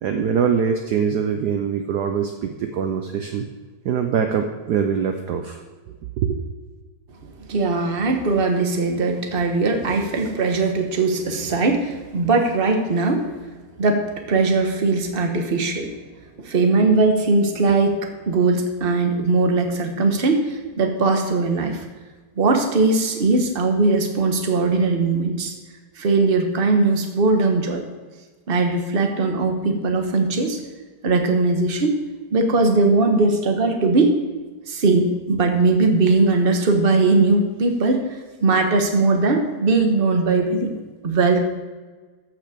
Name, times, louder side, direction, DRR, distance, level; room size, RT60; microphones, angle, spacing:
voice 1, 0.0-3.5 3.8-5.6 6.2-6.4, right 7 dB, 65° right, 5 dB, 1.1 m, -23 dB
voice 2, 7.5-13.3 13.8-15.9 16.4-18.0 18.3-21.8 22.4-25.5 26.0-27.8 28.5-30.6 31.0-32.0 32.3-34.1 34.7-38.0 38.4-40.7 41.0-41.4, right 3 dB, 35° right, 4 dB, 1.2 m, -19 dB
14.0 x 6.0 x 5.1 m, 1.4 s
omnidirectional pair, 2.3 m